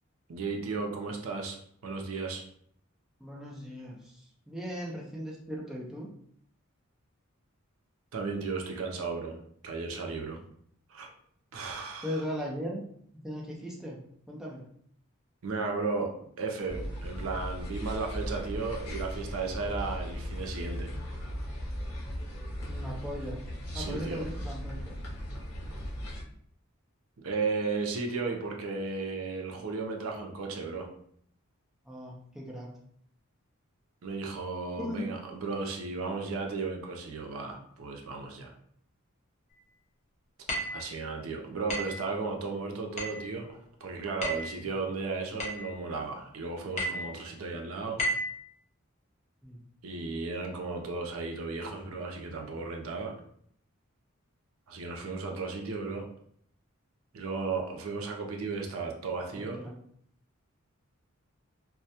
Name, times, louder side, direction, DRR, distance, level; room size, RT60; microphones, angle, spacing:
voice 1, 0.3-1.6 1.8-2.4 8.1-9.4 9.6-10.4 10.9-11.1 11.5-12.2 15.4-20.9 23.7-24.2 27.2-30.9 34.0-38.5 40.7-48.0 49.8-53.1 54.7-56.1 57.1-59.6, right 4 dB, 75° right, 1 dB, 0.5 m, -35 dB
voice 2, 3.2-6.1 12.0-12.8 13.1-14.0 14.3-14.6 22.7-23.4 23.7-24.9 31.9-32.7 34.8-35.0 44.6-44.7 49.4-49.6 59.3-59.8, equal, ahead, -4 dB, 0.3 m, -38 dB
sound 1, 16.7-26.2, equal, 90° left, 0.7 m, -37 dB
sound 2, 40.5-40.9 41.7-42.0 43.0-43.3 44.2-44.5 45.4-45.7 46.8-47.1 48.0-48.3, equal, 35° left, 0.6 m, -32 dB
2.2 x 2.1 x 2.7 m, 0.66 s
head